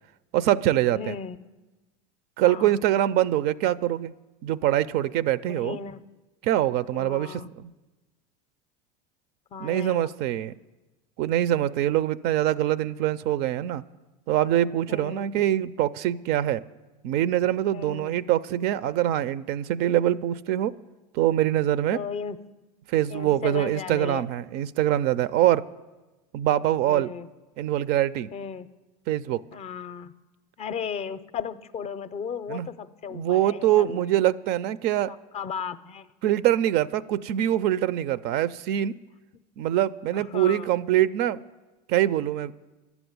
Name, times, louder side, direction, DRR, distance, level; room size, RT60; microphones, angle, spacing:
voice 1, 0.3-1.1 2.4-4.1 4.4-5.8 6.4-7.7 9.6-10.5 11.2-13.8 14.3-16.6 17.0-20.8 21.1-22.0 22.9-25.7 26.3-27.1 27.6-28.3 29.1-29.4 32.5-32.7 33.1-35.1 36.2-39.0 39.6-41.4 41.9-42.5, right 12 dB, 55° right, 18 dB, 0.4 m, -24 dB
voice 2, 0.9-1.4 2.4-2.8 5.5-6.0 6.9-7.5 9.5-10.1 14.9-15.5 17.7-18.1 21.9-22.4 23.1-24.2 26.8-27.3 28.3-28.7 29.5-30.1 30.6-34.1 35.1-36.1 39.3-39.4 40.1-40.7, left 6 dB, 30° left, 14 dB, 0.5 m, -35 dB
11.0 x 7.1 x 9.4 m, 1.1 s
hypercardioid pair, 95°, 20 cm